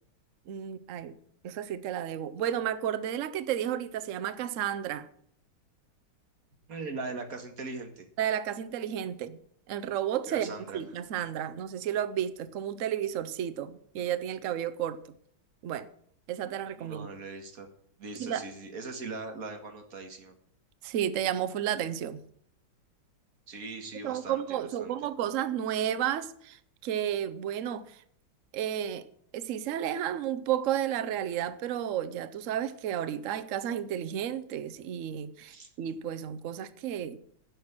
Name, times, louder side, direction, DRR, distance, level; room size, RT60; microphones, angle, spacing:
voice 1, 0.5-1.2 1.4-5.1 8.2-9.4 9.7-15.0 15.6-15.9 16.3-17.1 18.2-18.4 20.8-22.2 24.0-28.0 28.5-29.1 29.3-37.2, right 10 dB, 90° right, 0.6 m, -32 dB
voice 2, 6.7-8.1 10.3-10.8 16.8-17.7 18.0-20.3 23.5-24.9 35.4-35.7, right 3 dB, 45° right, 2.0 m, -40 dB
10.5 x 6.1 x 8.8 m
omnidirectional pair, 2.2 m